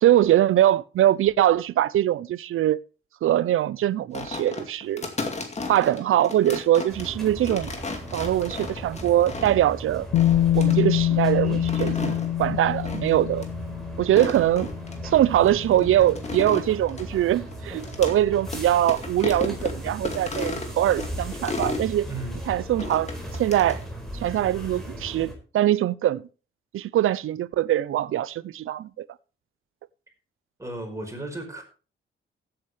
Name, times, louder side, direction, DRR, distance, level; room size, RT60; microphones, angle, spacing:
voice 1, 0.0-2.8 3.2-5.1 5.7-7.7 8.1-10.1 10.5-13.5 14.0-14.7 15.0-22.1 22.5-23.1 23.4-23.8 24.2-26.2 26.7-29.1, right 12 dB, 80° right, 0.6 m, -22 dB
sound 1, 4.1-9.7 10.1-10.8 11.5-12.3 12.8-13.1 13.4-13.5 14.0-15.0 15.5-18.2 18.5-18.6 18.9-21.9 22.8-23.8, left 3 dB, 30° left, 2.3 m, -34 dB
sound 2, 6.9-25.3, equal, ahead, 4.4 m, -37 dB
Bass guitar, 10.1-16.2, left 12 dB, 70° left, 0.4 m, -25 dB
voice 2, 22.1-22.4 30.6-31.6, right 2 dB, 15° right, 4.8 m, -34 dB
15.5 x 8.8 x 3.3 m
cardioid pair, 115°, 21 cm